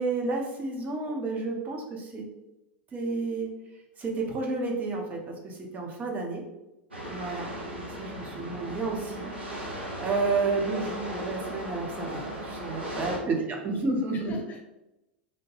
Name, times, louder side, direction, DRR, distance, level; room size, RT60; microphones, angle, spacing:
voice 1, 0.0-2.2 2.9-3.5 4.0-6.4 7.1-9.3 9.5-14.3, right 3 dB, 25° right, 0 dB, 0.6 m, -31 dB
sound 1, 6.9-13.2, equal, 80° right, 0.7 m, -37 dB
voice 2, 8.2-8.7 12.7-13.4 14.1-14.6, left 5 dB, 30° left, 2 dB, 0.4 m, -42 dB
2.8 x 2.1 x 3.2 m, 0.94 s
figure-of-eight pair, 85°, 6 cm